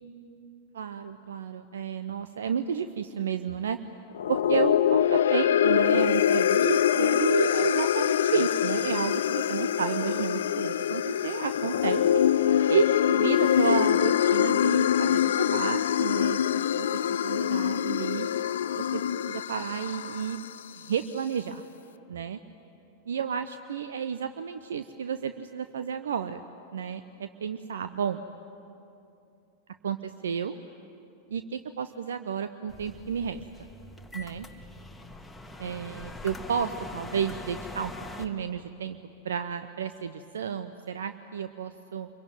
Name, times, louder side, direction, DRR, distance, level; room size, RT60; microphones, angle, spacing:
voice 1, 0.7-3.8 4.3-12.0 12.7-18.3 18.8-20.4 20.7-21.6 22.1-22.4 23.1-26.4 26.7-28.2 29.8-30.6 31.3-33.7 34.1-34.5 35.6-37.9 38.2-39.0 39.2-42.1, right 7 dB, 65° right, 10 dB, 0.7 m, -31 dB
sound 1, 4.1-20.6, left 10 dB, 60° left, 0.5 m, -24 dB
sound 2, 32.7-38.3, left 2 dB, 5° left, 1.7 m, -43 dB
26.5 x 23.0 x 9.2 m, 2.7 s
figure-of-eight pair, 90°, 0 cm